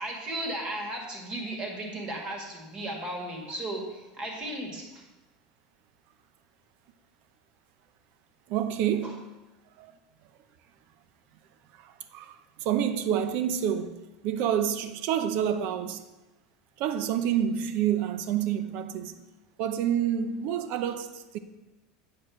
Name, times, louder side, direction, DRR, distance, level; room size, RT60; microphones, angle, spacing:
voice 1, 0.0-5.0 9.0-9.1, right 1 dB, 30° right, 2.0 m, -35 dB
voice 2, 8.5-9.2 9.8-9.9 11.8-12.3 12.6-14.0 14.2-16.0 16.8-19.1 19.6-21.4, right 9 dB, 50° right, 0.6 m, -28 dB
8.6 x 4.6 x 6.2 m
supercardioid pair, 145°, 3 cm